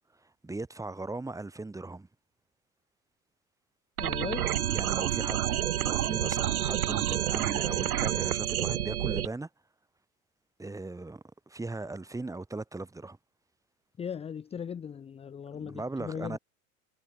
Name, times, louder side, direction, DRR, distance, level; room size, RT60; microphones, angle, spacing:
voice 1, 0.4-2.1 4.7-9.5 10.6-13.2 15.5-16.4, right 2 dB, 5° right, 1.5 m, -38 dB
voice 2, 4.0-4.5 14.0-16.4, left 7 dB, 15° left, 0.6 m, -38 dB
sound 1, 4.0-9.3, right 12 dB, 80° right, 0.8 m, -29 dB
hypercardioid pair, 85°, 43 cm